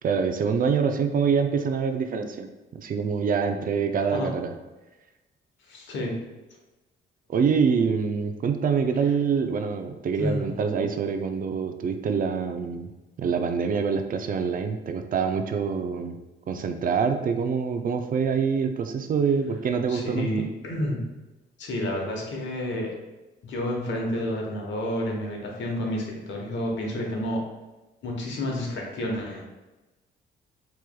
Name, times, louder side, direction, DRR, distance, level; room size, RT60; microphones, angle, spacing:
voice 1, 0.0-4.5 7.3-12.9 13.2-16.2 16.5-20.5, right 6 dB, 45° right, 6 dB, 0.4 m, -25 dB
voice 2, 5.7-6.2 10.2-10.5 19.9-21.0 21.6-22.9 23.4-27.4 28.0-29.5, left 1 dB, 70° left, 0 dB, 1.0 m, -30 dB
4.5 x 3.0 x 2.2 m, 1.1 s
cardioid pair, 90°, 20 cm